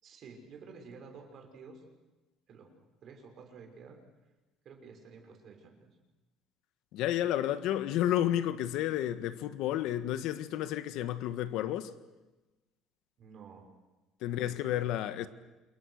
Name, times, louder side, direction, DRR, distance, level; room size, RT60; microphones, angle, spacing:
voice 1, 0.0-1.8 2.5-2.7 3.0-4.0 4.6-6.0 13.2-13.7 14.3-14.8, right 5 dB, 45° right, 6.3 m, -51 dB
voice 2, 6.9-11.9 14.2-15.3, left 12 dB, 75° left, 1.5 m, -31 dB
29.0 x 28.5 x 6.6 m
cardioid pair, 150°, 0 cm